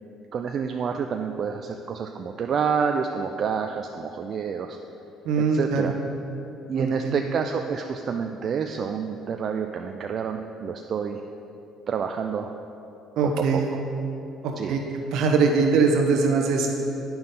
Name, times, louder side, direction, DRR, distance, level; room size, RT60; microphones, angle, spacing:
voice 1, 0.3-4.8 5.5-5.9 6.7-11.2 11.9-12.5 13.2-13.8 14.6-14.8, right 6 dB, 50° right, 5 dB, 0.4 m, -28 dB
voice 2, 5.2-5.9 6.8-7.2 13.2-13.7 14.4-16.7, right 4 dB, 70° right, 2 dB, 1.0 m, -22 dB
8.6 x 5.8 x 3.7 m, 2.9 s
supercardioid pair, 70°, 0 cm